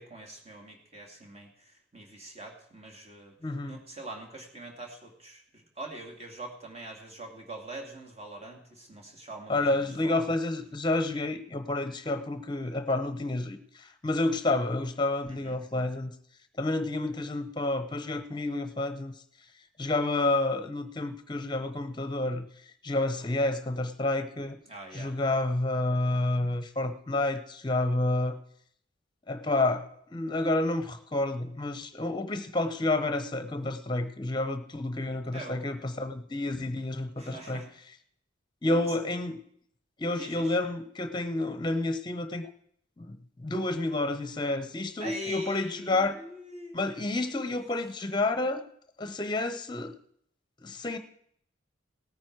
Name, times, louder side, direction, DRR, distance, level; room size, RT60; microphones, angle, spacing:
voice 1, 0.0-3.4 3.6-9.8 10.0-10.2 15.3-15.6 24.7-25.1 35.3-35.9 37.2-37.7 38.6-39.0 40.2-40.6 45.0-46.8, right 1 dB, 30° right, 1 dB, 2.5 m, -43 dB
voice 2, 3.4-3.8 9.5-13.6 14.0-16.1 16.6-19.1 19.8-22.4 22.8-24.6 24.9-28.4 29.3-37.6 38.6-39.4 40.0-42.5 43.0-46.2 46.7-48.6 49.0-49.9 50.6-51.0, left 2 dB, 25° left, 10 dB, 0.9 m, -29 dB
17.5 x 9.5 x 4.7 m, 0.68 s
head